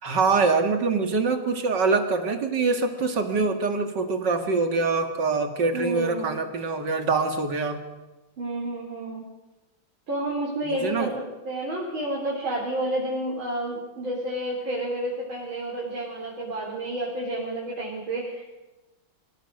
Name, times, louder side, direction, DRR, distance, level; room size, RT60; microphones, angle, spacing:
voice 1, 0.0-7.8 10.6-11.1, right 4 dB, 60° right, 6 dB, 2.6 m, -24 dB
voice 2, 5.7-6.3 8.4-9.2 10.1-18.4, right 1 dB, 85° right, -4 dB, 4.7 m, -30 dB
25.5 x 17.0 x 6.6 m, 1.1 s
omnidirectional pair, 2.1 m